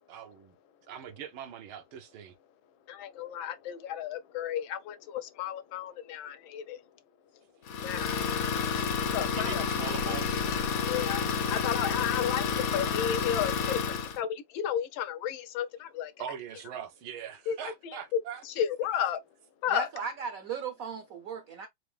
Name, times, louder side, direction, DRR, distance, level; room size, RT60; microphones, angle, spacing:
voice 1, 0.1-0.5 0.9-2.3 9.4-10.4 13.6-13.7 16.2-18.4, right 9 dB, 90° right, 1.7 m, -41 dB
voice 2, 2.9-6.8 7.8-8.8 9.1-9.6 10.1-10.2 10.9-16.1 17.5-18.0 18.5-19.2 19.6-19.9, left 9 dB, 80° left, 1.4 m, -33 dB
Idling, 7.7-14.2, left 6 dB, 60° left, 1.0 m, -30 dB
voice 3, 19.7-21.7, right 6 dB, 65° right, 0.9 m, -36 dB
4.9 x 2.5 x 3.2 m
omnidirectional pair, 2.2 m